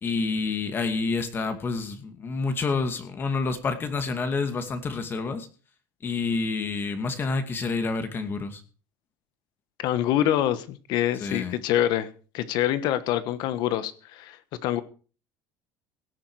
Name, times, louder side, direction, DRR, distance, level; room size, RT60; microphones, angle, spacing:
voice 1, 0.0-5.5 6.0-8.6 11.2-11.6, left 4 dB, 25° left, 8 dB, 2.4 m, -28 dB
voice 2, 9.8-12.1 12.3-14.8, left 12 dB, 65° left, 14 dB, 1.3 m, -26 dB
17.5 x 10.5 x 4.8 m, 0.37 s
cardioid pair, 140°, 8 cm